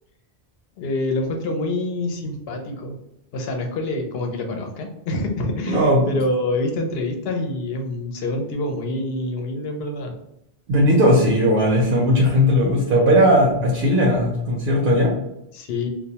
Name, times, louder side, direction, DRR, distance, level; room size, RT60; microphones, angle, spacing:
voice 1, 0.8-3.0 3.3-10.1 15.5-15.9, left 2 dB, 70° left, 3 dB, 0.8 m, -26 dB
voice 2, 5.7-6.2 10.7-15.1, equal, 60° right, -1 dB, 0.7 m, -17 dB
2.2 x 2.1 x 2.7 m, 0.82 s
omnidirectional pair, 1.1 m